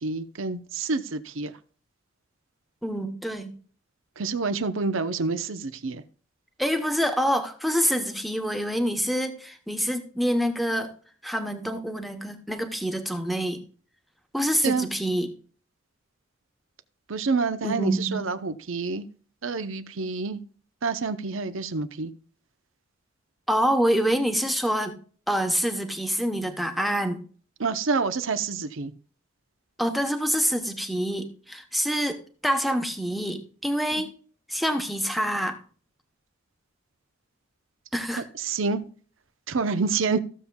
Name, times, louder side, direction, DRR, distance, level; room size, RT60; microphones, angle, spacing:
voice 1, 0.0-1.5 4.2-6.0 14.6-14.9 17.1-19.0 19.4-20.4 20.8-22.1 27.6-28.9 38.5-38.8 39.5-40.2, right 4 dB, 75° right, 0.8 m, -27 dB
voice 2, 2.8-3.5 6.6-10.9 11.2-13.6 14.3-15.3 17.6-18.2 23.5-25.0 25.3-27.2 29.8-34.1 34.5-35.6 37.9-38.2, equal, ahead, 1.0 m, -26 dB
15.0 x 7.1 x 2.3 m
head